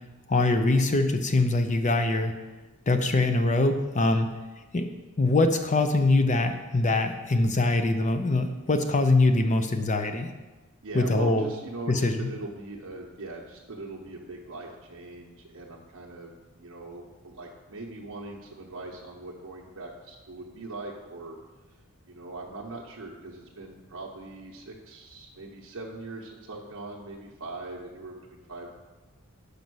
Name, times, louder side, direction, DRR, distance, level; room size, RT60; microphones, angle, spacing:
voice 1, 0.3-2.3 2.9-4.3 4.7-4.9 5.2-10.3 10.9-11.5 11.9-12.3, left 2 dB, 35° left, 7 dB, 0.6 m, -23 dB
voice 2, 10.8-21.4 22.1-28.7, right 2 dB, 65° right, -3 dB, 0.8 m, -41 dB
5.3 x 5.2 x 6.2 m, 1.2 s
head